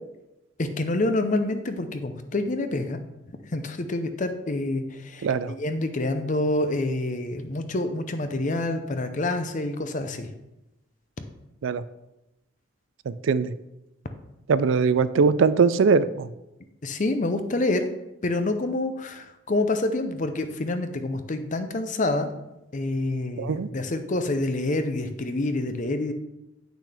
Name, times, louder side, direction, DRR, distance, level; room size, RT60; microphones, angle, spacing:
voice 1, 0.6-3.0 3.5-10.3 16.8-17.9 18.2-22.3 22.7-26.1, left 2 dB, 40° left, 8 dB, 0.6 m, -27 dB
voice 2, 5.2-5.5 11.6-11.8 13.3-13.5 14.5-16.3 23.4-23.7, right 5 dB, 75° right, 15 dB, 0.4 m, -21 dB
8.5 x 6.0 x 3.5 m, 0.93 s
head